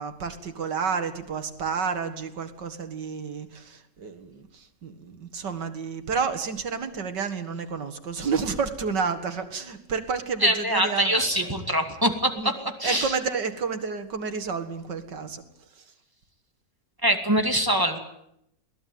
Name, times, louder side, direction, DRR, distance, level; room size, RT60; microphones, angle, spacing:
voice 1, 0.0-11.5 12.4-12.5 12.8-15.4 15.8-15.9, right 5 dB, 75° right, 7 dB, 2.5 m, -30 dB
voice 2, 10.4-12.5 12.8-13.1 17.0-18.0, right 1 dB, 10° right, 5 dB, 2.4 m, -23 dB
22.5 x 17.0 x 9.5 m, 0.76 s
omnidirectional pair, 1.9 m